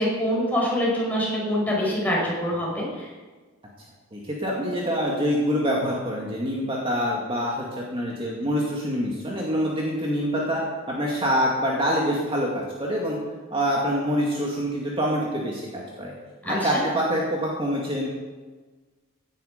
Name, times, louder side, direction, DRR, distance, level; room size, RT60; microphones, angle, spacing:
voice 1, 0.0-3.1 16.5-16.8, equal, 10° left, -4 dB, 5.5 m, -25 dB
voice 2, 4.1-10.6 10.9-13.2 13.5-16.1 16.4-18.1, equal, 25° right, -3 dB, 2.2 m, -25 dB
16.5 x 11.0 x 5.2 m, 1.3 s
head